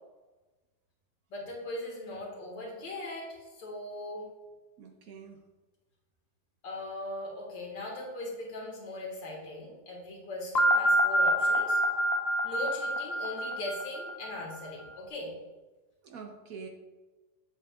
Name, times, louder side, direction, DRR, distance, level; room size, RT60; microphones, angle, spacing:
voice 1, 1.3-4.3 6.6-11.8 12.4-15.3, left 1 dB, 75° left, -2 dB, 2.3 m, -39 dB
voice 2, 4.8-5.4 16.0-16.7, right 5 dB, 65° right, 3 dB, 0.9 m, -45 dB
sound 1, 10.5-14.5, equal, 55° left, 0.7 m, -26 dB
7.8 x 7.7 x 2.3 m, 1.2 s
omnidirectional pair, 2.0 m